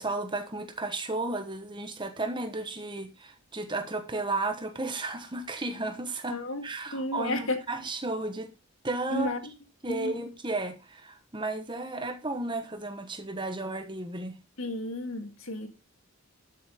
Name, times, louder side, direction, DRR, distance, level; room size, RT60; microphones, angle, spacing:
voice 1, 0.0-8.5 8.8-9.3 9.8-14.4, right 2 dB, 20° right, 1.2 m, -33 dB
voice 2, 6.3-6.6 6.9-7.6 9.1-9.4 9.9-10.2 14.6-15.7, left 2 dB, 70° left, 2.0 m, -32 dB
12.5 x 7.6 x 3.7 m
head